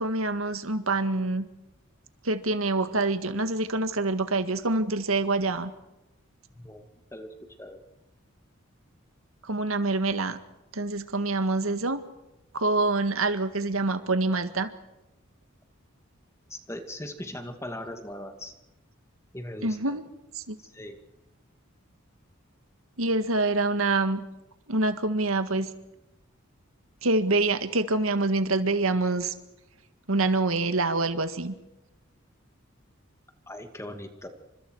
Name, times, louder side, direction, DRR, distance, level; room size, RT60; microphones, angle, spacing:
voice 1, 0.0-1.5 2.2-5.7 9.4-10.4 10.7-12.0 12.5-14.7 19.6-20.1 20.3-20.6 23.0-24.3 24.7-25.7 27.0-29.3 30.1-31.5, right 2 dB, 85° right, 9 dB, 1.9 m, -26 dB
voice 2, 7.1-7.8 16.5-18.5 19.3-19.9 20.6-21.0 33.5-34.3, left 1 dB, 15° left, 6 dB, 2.3 m, -39 dB
29.5 x 25.5 x 4.8 m, 0.94 s
head